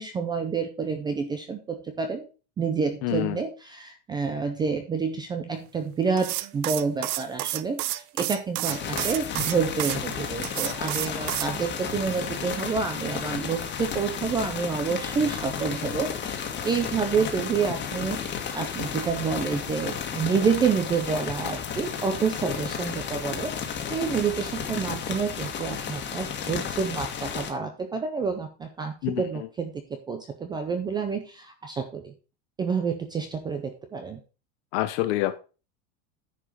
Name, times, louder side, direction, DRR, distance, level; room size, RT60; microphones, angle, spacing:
voice 1, 0.0-2.3 2.6-16.4 16.6-23.5 23.9-32.1 32.6-34.2, right 5 dB, 10° right, 6 dB, 0.3 m, -28 dB
voice 2, 3.0-3.4 29.0-29.2 34.7-35.4, left 16 dB, 50° left, 9 dB, 0.9 m, -26 dB
sound 1, 6.2-10.0 10.4-11.5, right 17 dB, 70° right, 0.7 m, -30 dB
sound 2, 8.6-27.5, left 7 dB, 25° left, 1.6 m, -33 dB
10.0 x 4.8 x 5.1 m, 0.33 s
supercardioid pair, 160°, 45 cm